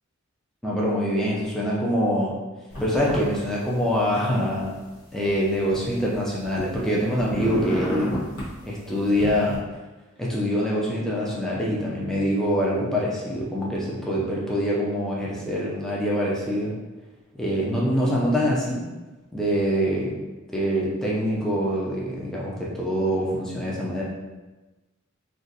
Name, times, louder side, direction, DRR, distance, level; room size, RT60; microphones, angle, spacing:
voice 1, 0.6-2.4 2.8-4.8 5.1-8.1 8.6-9.6 10.2-16.7 17.3-18.8 19.3-20.1 20.5-24.0, equal, ahead, -5 dB, 0.5 m, -25 dB
sound 1, 2.7-3.4 3.7-4.6 5.2-6.9 7.1-8.5 9.1-9.6, equal, 85° left, 0.9 m, -31 dB
2.5 x 2.4 x 3.9 m, 1.2 s
head